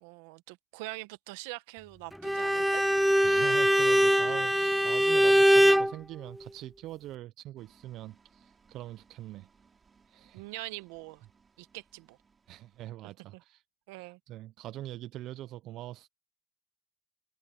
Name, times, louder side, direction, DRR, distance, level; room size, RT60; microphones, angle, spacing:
voice 1, 0.0-2.8 10.3-11.2 11.6-12.2 13.9-14.2, right 22 dB, 85° right, 1.2 m, -43 dB
Bowed string instrument, 2.2-5.9, equal, ahead, 0.3 m, -22 dB
voice 2, 3.2-9.5 10.1-10.4 12.5-13.6 13.9-16.1, right 14 dB, 70° right, 0.6 m, -43 dB
sound 1, 7.6-12.9, right 5 dB, 35° right, 6.5 m, -65 dB
supercardioid pair, 70°, 0 cm